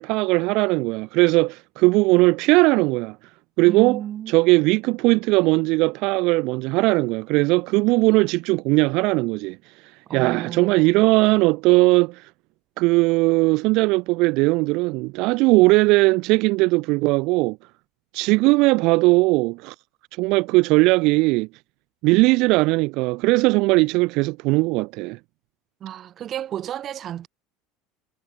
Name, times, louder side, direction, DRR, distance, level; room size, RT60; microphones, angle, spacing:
voice 1, 0.0-3.2 3.6-4.0 4.3-9.6 10.1-12.3 12.8-17.6 18.1-19.7 20.2-21.5 22.0-25.2, right 24 dB, 65° right, 1.3 m, -19 dB
voice 2, 3.7-4.4 10.1-11.0 25.8-27.3, right 11 dB, 40° right, 3.5 m, -32 dB
supercardioid pair, 115°, 0 cm